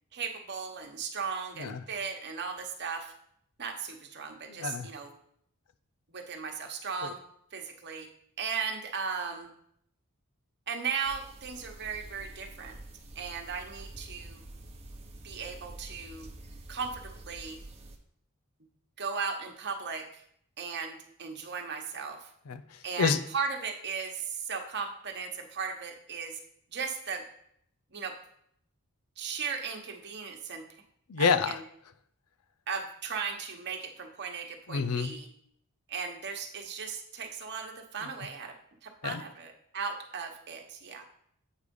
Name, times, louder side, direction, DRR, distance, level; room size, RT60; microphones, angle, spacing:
voice 1, 0.1-3.1 3.6-5.1 6.1-7.2 7.5-8.1 8.4-9.5 10.7-12.8 13.1-14.4 15.2-16.3 16.7-17.6 19.0-20.1 20.6-22.3 22.8-26.4 26.7-27.2 27.9-28.1 29.2-30.6 31.2-31.6 32.7-35.3 35.9-38.5 38.8-41.0, right 5 dB, 50° right, 3 dB, 1.2 m, -36 dB
voice 2, 4.5-4.9 7.0-7.1 22.5-23.2 31.1-31.6 34.7-35.2 39.0-39.2, left 5 dB, 85° left, 11 dB, 0.6 m, -29 dB
sound 1, 11.0-18.0, right 1 dB, 30° right, 0.9 m, -47 dB
8.3 x 4.9 x 5.4 m, 0.68 s
head